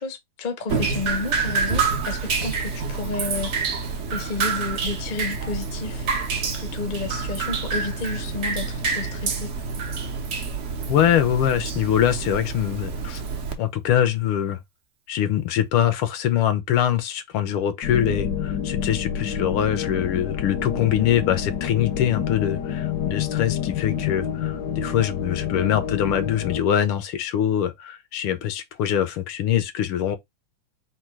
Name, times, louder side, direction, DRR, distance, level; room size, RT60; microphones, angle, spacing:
voice 1, 0.0-3.7 4.1-6.1 6.5-9.5, left 4 dB, 55° left, 0.5 m, -31 dB
Drip, 0.7-13.5, right 5 dB, 55° right, 0.8 m, -27 dB
voice 2, 10.9-13.2 13.6-14.6 15.1-30.2, left 10 dB, 85° left, 1.6 m, -23 dB
sound 1, 17.8-26.6, left 8 dB, 70° left, 1.1 m, -28 dB
4.3 x 2.2 x 4.5 m
omnidirectional pair, 2.3 m